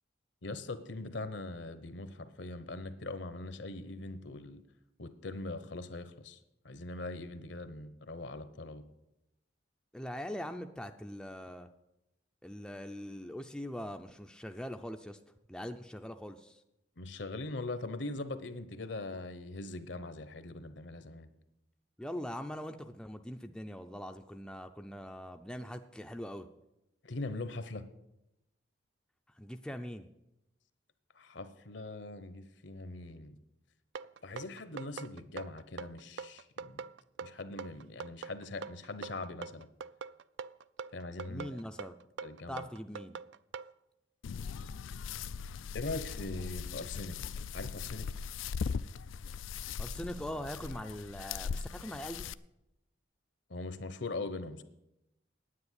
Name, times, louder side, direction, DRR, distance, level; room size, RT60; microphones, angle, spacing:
voice 1, 0.4-4.6 5.0-6.4 6.6-8.8 17.0-21.3 27.0-27.8 31.1-33.4 34.2-36.9 37.2-39.7 40.9-41.6 42.2-42.7 45.7-47.2 47.5-48.1 53.5-54.6, left 2 dB, 70° left, 12 dB, 0.9 m, -41 dB
voice 2, 9.9-11.7 12.4-15.2 15.5-16.6 22.0-26.5 29.4-30.1 41.3-41.9 42.5-43.2 49.8-52.3, equal, 5° left, 5 dB, 0.4 m, -42 dB
sound 1, 33.9-43.7, right 6 dB, 65° right, 0.3 m, -43 dB
sound 2, 44.2-52.3, left 6 dB, 85° left, 0.4 m, -39 dB
9.7 x 9.0 x 8.1 m, 0.89 s
head